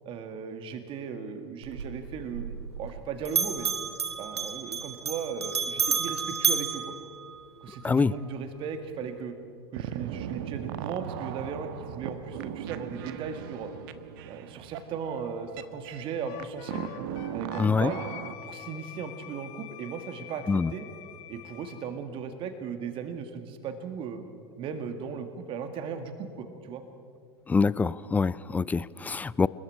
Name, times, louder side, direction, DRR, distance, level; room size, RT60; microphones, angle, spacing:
voice 1, 0.1-3.7 4.2-6.8 7.6-9.3 9.7-13.7 14.3-16.9 17.3-18.1 18.4-20.9 21.3-24.2 24.6-26.8, right 6 dB, 40° right, 8 dB, 1.8 m, -37 dB
Bell, 1.6-3.0 3.3-7.7, right 6 dB, 80° right, 1.5 m, -31 dB
sound 1, 9.7-18.3, right 10 dB, 55° right, 1.2 m, -38 dB
Wind instrument woodwind instrument, 16.3-21.9, left 13 dB, 50° left, 2.0 m, -45 dB
voice 2, 17.6-17.9 20.5-20.7 27.5-29.5, left 4 dB, 10° left, 20 dB, 0.4 m, -25 dB
30.0 x 20.0 x 4.8 m, 2.4 s
figure-of-eight pair, 90°, 14 cm